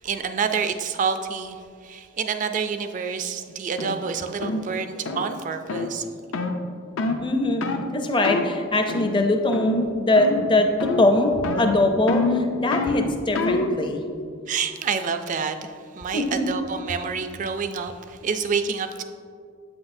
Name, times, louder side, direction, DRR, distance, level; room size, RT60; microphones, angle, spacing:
voice 1, 0.0-1.6 1.8-6.0 14.5-15.7 15.9-19.0, right 6 dB, 40° right, 8 dB, 0.3 m, -28 dB
sound 1, 3.8-4.0 4.4-4.6 5.0-5.3 5.7-5.9 6.3-6.6 7.0-7.2 7.6-7.9 8.2-8.5 8.9-9.2 9.5-9.9 10.2-10.5 10.8-11.1 11.4-13.8, left 3 dB, 75° left, 0.5 m, -26 dB
voice 2, 7.2-7.6 7.9-11.3 11.6-14.0 16.1-16.4, left 2 dB, 25° left, 4 dB, 0.5 m, -22 dB
7.9 x 6.0 x 2.6 m, 2.2 s
head